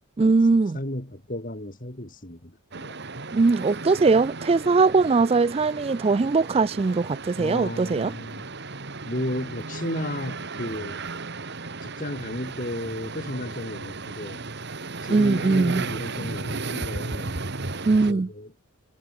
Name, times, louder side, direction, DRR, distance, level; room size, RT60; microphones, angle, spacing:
voice 1, 0.2-0.8 3.3-8.1 15.1-15.8 17.9-18.3, right 4 dB, 25° right, 0.3 m, -20 dB
voice 2, 0.7-3.0 7.4-8.5 9.0-11.0 11.8-14.5 15.0-17.4 18.0-18.5, left 1 dB, 35° left, 3.5 m, -34 dB
sound 1, 2.7-18.1, right 3 dB, 50° right, 1.9 m, -35 dB
head